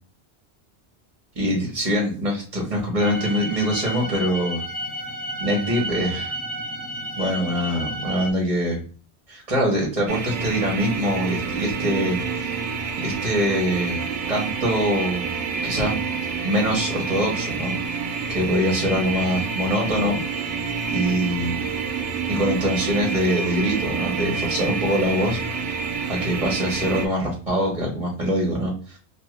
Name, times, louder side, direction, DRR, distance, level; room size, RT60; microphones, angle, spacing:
voice 1, 1.3-4.6 5.4-6.3 7.2-8.8 9.3-12.6 13.0-15.2 15.6-16.0 16.4-17.7 18.3-20.2 20.9-21.7 22.3-25.4 26.1-29.0, equal, 35° right, -1 dB, 1.0 m, -24 dB
sound 1, 3.0-8.3, right 1 dB, 15° left, 0.4 m, -32 dB
sound 2, 10.1-27.1, right 5 dB, 85° right, 0.9 m, -28 dB
2.7 x 2.4 x 2.9 m, 0.40 s
omnidirectional pair, 1.2 m